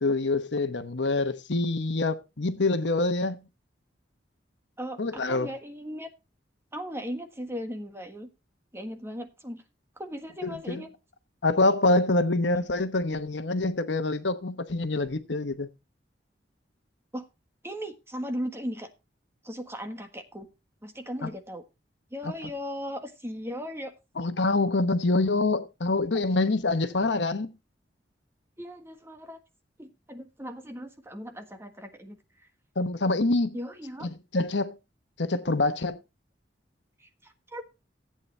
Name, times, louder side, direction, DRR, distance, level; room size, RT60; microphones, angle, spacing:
voice 1, 0.0-3.4 5.0-5.5 10.7-10.8 11.4-15.7 24.2-27.5 32.8-33.6 34.3-34.8 35.2-36.0, left 2 dB, 75° left, 1.1 m, -25 dB
voice 2, 4.8-6.1 6.7-8.3 8.7-9.6 10.0-10.9 17.1-17.3 17.6-18.9 19.4-20.5 20.8-21.6 22.1-23.9 28.6-29.4 29.8-32.5 33.5-34.1 37.0-37.6, equal, 15° right, 1.5 m, -37 dB
15.0 x 8.7 x 3.2 m
head